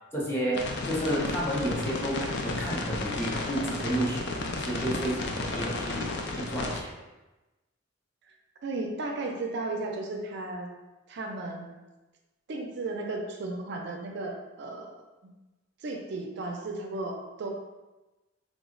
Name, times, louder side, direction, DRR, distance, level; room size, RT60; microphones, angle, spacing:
voice 1, 0.1-6.9, right 1 dB, 10° left, -4 dB, 0.6 m, -31 dB
sound 1, 0.5-6.8, left 3 dB, 60° left, 0.4 m, -33 dB
voice 2, 5.5-6.4 8.6-10.7 11.1-11.7 12.5-14.9 15.8-17.5, right 2 dB, 60° right, 2 dB, 0.4 m, -35 dB
3.5 x 2.0 x 3.7 m, 1.1 s
head